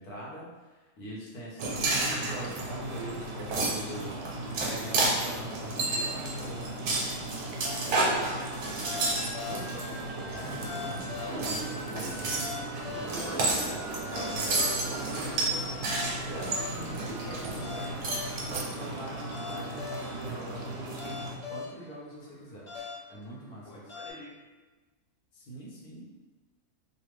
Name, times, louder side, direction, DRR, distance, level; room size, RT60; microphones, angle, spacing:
voice 1, 0.0-4.1 4.4-6.8 7.8-8.3 9.9-10.0 10.3-22.7 23.1-24.0 25.3-26.1, equal, 85° left, -5 dB, 1.3 m, -43 dB
sound 1, 1.6-21.4, right 2 dB, 75° right, 0.6 m, -38 dB
sound 2, 1.6-9.8 10.3-11.0 11.4-17.7 18.0-18.6, right 2 dB, 90° right, 1.3 m, -31 dB
sound 3, 7.6-24.1, left 4 dB, 40° left, 0.8 m, -42 dB
voice 2, 7.8-9.2 9.5-9.9 23.7-24.3, left 2 dB, 65° left, -4 dB, 1.1 m, -50 dB
3.3 x 2.1 x 3.1 m, 1.2 s
omnidirectional pair, 1.6 m